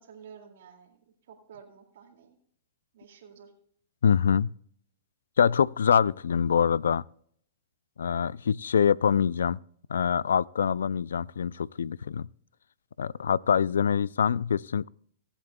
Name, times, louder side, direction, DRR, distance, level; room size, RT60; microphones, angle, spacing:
voice 1, 0.1-1.0 1.3-2.4 2.9-3.5, right 7 dB, 70° right, 2.3 m, -50 dB
voice 2, 4.0-4.5 5.4-7.0 8.0-9.6 9.9-12.3 13.0-14.9, left 7 dB, 80° left, 0.3 m, -24 dB
23.5 x 8.0 x 2.2 m
hypercardioid pair, 120°, 0 cm